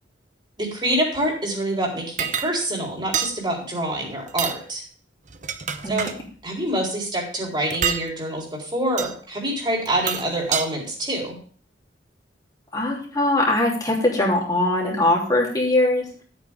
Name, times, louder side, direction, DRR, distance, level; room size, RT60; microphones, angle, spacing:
voice 1, 0.6-4.8 5.9-6.1 6.4-11.4, right 1 dB, 25° right, -2 dB, 3.9 m, -26 dB
sound 1, 2.2-2.5 3.1-3.3 4.3-4.6 5.3-6.2 7.7-8.0 9.0-9.1 9.9-10.7, right 8 dB, 40° right, 0.8 m, -26 dB
voice 2, 12.7-16.1, left 2 dB, 20° left, -3 dB, 3.5 m, -21 dB
13.5 x 8.8 x 3.7 m, 0.43 s
head